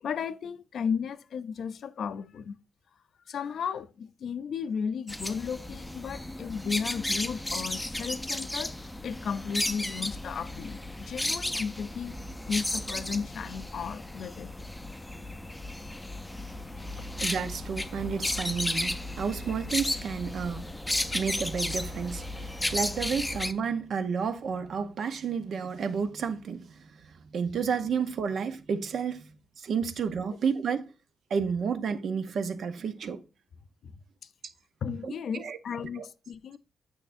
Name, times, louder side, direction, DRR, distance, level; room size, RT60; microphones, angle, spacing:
voice 1, 0.0-2.6 3.3-8.7 9.0-12.1 12.5-14.6 17.0-17.1 33.8-33.9 34.8-36.6, left 6 dB, 65° left, 0.4 m, -34 dB
sound 1, 5.1-23.5, left 1 dB, 10° left, 0.5 m, -34 dB
voice 2, 17.2-20.7 21.1-26.7 27.3-29.3 29.6-30.9 31.3-33.2 35.0-35.6 36.0-36.1, right 6 dB, 65° right, 0.7 m, -31 dB
8.8 x 6.5 x 2.6 m
cardioid pair, 115°, 0 cm